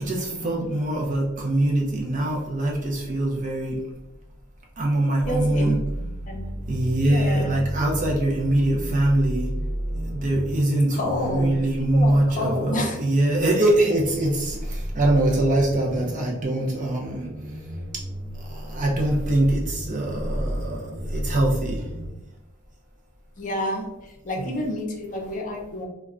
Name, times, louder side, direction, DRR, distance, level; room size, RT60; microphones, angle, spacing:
voice 1, 0.0-3.8 4.8-5.8 6.7-9.5 10.0-17.3 18.4-20.8 21.1-21.9 24.4-24.6, right 1 dB, 35° right, -1 dB, 0.4 m, -23 dB
sound 1, 5.2-22.1, equal, 20° right, 0.9 m, -33 dB
voice 2, 5.3-6.5 7.1-7.6 10.9-13.0 23.4-25.9, left 1 dB, 35° left, 0 dB, 0.5 m, -30 dB
2.2 x 2.1 x 3.6 m, 0.94 s
head